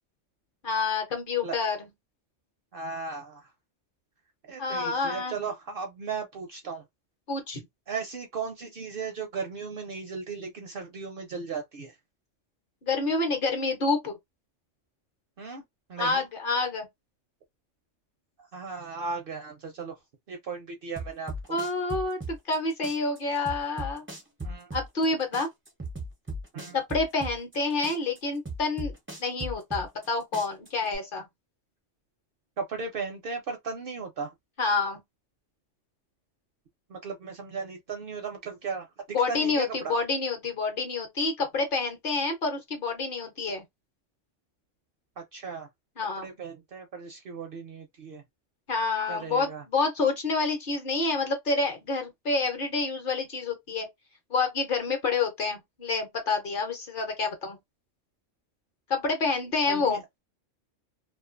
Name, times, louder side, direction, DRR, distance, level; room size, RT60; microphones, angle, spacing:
voice 1, 0.6-1.8 4.6-5.4 7.3-7.6 12.8-14.1 16.0-16.9 21.5-24.0 24.7-25.5 26.7-28.9 29.2-31.3 34.6-35.0 39.1-43.6 46.0-46.3 48.7-53.9 54.3-57.6 58.9-60.0, left 3 dB, 50° left, 0.8 m, -28 dB
voice 2, 2.7-3.5 4.5-6.8 7.9-12.0 15.4-15.6 15.9-16.2 18.5-20.0 20.3-21.6 24.4-24.7 26.5-26.8 32.6-34.3 36.9-38.9 39.3-39.9 45.2-45.7 46.2-48.2 49.1-49.6 59.7-60.0, right 5 dB, 60° right, 0.6 m, -36 dB
sound 1, 21.0-22.6 22.8-25.1 25.3-27.6 27.8-30.1 30.3-31.0, right 1 dB, 20° right, 0.3 m, -37 dB
2.4 x 2.3 x 2.4 m
omnidirectional pair, 1.3 m